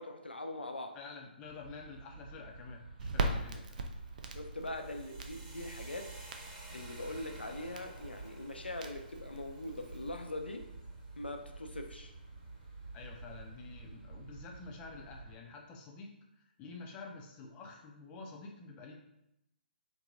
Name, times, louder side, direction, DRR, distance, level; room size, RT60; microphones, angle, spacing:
voice 1, 0.0-0.9 4.3-6.1 6.7-10.6 11.2-12.1, left 1 dB, 85° left, 5 dB, 0.3 m, -42 dB
voice 2, 0.9-3.9 12.9-16.1 16.6-18.9, left 4 dB, 20° left, 0 dB, 0.4 m, -49 dB
sound 1, 1.4-15.4, right 3 dB, 75° right, 1.4 m, -50 dB
Crackle, 3.0-10.3, right 3 dB, 50° right, 0.3 m, -41 dB
sound 2, 4.6-12.6, right 1 dB, 25° right, 0.7 m, -56 dB
2.9 x 2.6 x 2.4 m, 0.83 s
figure-of-eight pair, 130°, 5 cm